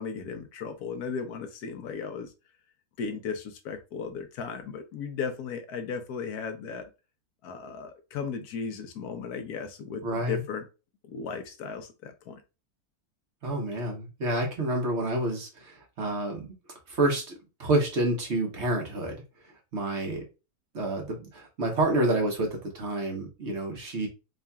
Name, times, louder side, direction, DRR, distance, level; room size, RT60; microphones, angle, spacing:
voice 1, 0.0-2.3 3.0-6.9 7.4-10.6 11.0-12.4, left 5 dB, 85° left, 1.3 m, -36 dB
voice 2, 10.0-10.4 13.4-16.4 16.9-17.3 17.6-20.2 20.7-24.1, right 1 dB, 50° right, 1.3 m, -28 dB
4.1 x 3.7 x 2.3 m
omnidirectional pair, 1.6 m